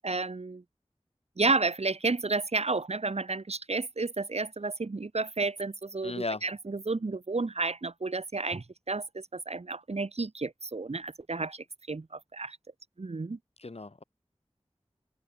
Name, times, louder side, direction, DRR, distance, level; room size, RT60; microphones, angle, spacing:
voice 1, 0.0-0.6 1.4-12.6 13.0-13.4, right 3 dB, 75° right, 1.9 m, -31 dB
voice 2, 6.0-6.4 13.6-14.0, left 3 dB, 65° left, 4.5 m, -35 dB
wide cardioid pair, 55°, 11 cm